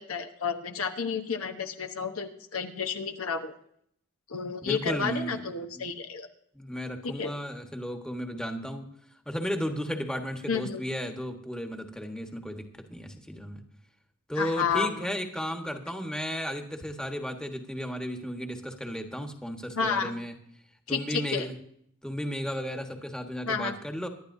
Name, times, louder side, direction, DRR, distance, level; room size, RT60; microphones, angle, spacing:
voice 1, 0.0-3.5 4.3-6.3 7.0-7.3 10.5-10.8 14.4-14.9 19.8-20.1 20.9-21.5 23.5-23.8, left 6 dB, 70° left, 5 dB, 1.0 m, -31 dB
voice 2, 4.6-5.4 5.7-5.9 6.5-8.9 9.2-13.6 14.3-20.4 20.9-21.5 22.0-24.1, equal, 5° left, 4 dB, 1.3 m, -34 dB
24.0 x 11.5 x 2.7 m, 0.68 s
head